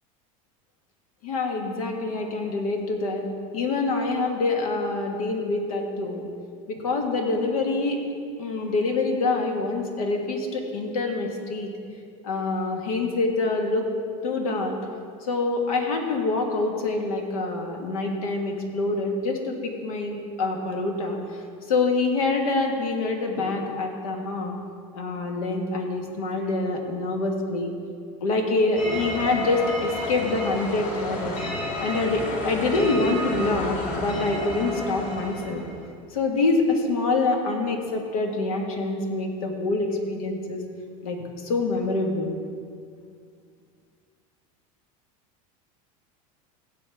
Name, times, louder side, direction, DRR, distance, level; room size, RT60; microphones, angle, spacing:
voice 1, 1.2-3.3 3.5-6.2 6.7-8.0 8.4-11.7 12.2-13.9 14.2-14.8 15.3-21.2 21.7-24.6 24.9-27.7 28.2-31.3 31.8-35.6 36.1-40.6 41.0-42.3, left 3 dB, 90° left, 2 dB, 1.6 m, -26 dB
sound 1, 28.8-35.8, left 1 dB, 50° left, 2.8 m, -31 dB
16.0 x 8.5 x 3.5 m, 2.2 s
supercardioid pair, 125°, 18 cm